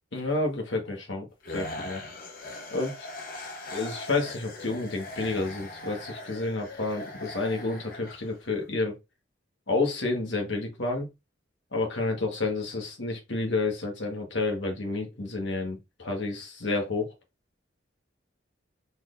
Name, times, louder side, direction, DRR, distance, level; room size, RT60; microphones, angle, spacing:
voice 1, 0.1-2.0 2.7-3.1 3.7-9.0 9.7-11.1 11.7-17.1, left 3 dB, 65° left, 1.5 m, -30 dB
sound 1, 1.4-8.6, left 2 dB, 50° left, 1.0 m, -40 dB
4.4 x 4.0 x 2.6 m
head